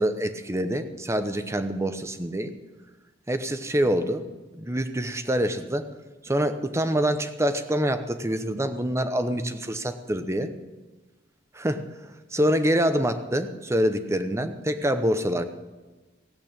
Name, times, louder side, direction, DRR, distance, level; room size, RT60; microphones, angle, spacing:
voice 1, 0.0-2.5 3.3-4.2 4.6-5.9 6.2-10.5 11.5-11.8 12.3-15.4, equal, 15° right, 9 dB, 0.8 m, -25 dB
16.5 x 8.5 x 8.8 m, 1.2 s
head